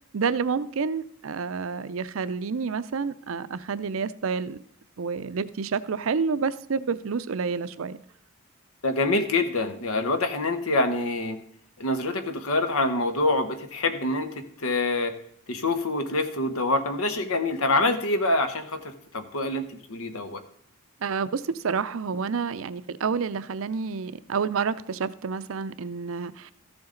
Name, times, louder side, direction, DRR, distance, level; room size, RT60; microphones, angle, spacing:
voice 1, 0.0-4.6 5.0-8.0 21.0-26.5, right 5 dB, 70° right, 15 dB, 0.5 m, -29 dB
voice 2, 8.8-11.4 11.8-15.1 15.5-20.4, left 2 dB, 80° left, 9 dB, 1.1 m, -26 dB
14.0 x 7.0 x 3.8 m, 0.68 s
head